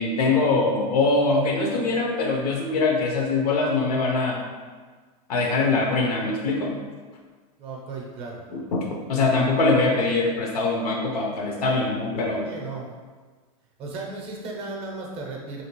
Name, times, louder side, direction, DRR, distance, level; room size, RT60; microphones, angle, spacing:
voice 1, 0.0-4.4 5.3-6.8 8.5-12.4, left 3 dB, 85° left, 0 dB, 0.7 m, -23 dB
voice 2, 7.6-8.4 12.4-12.9 13.8-15.6, right 3 dB, 30° right, -1 dB, 0.5 m, -35 dB
3.0 x 2.8 x 2.9 m, 1.4 s
supercardioid pair, 155°, 19 cm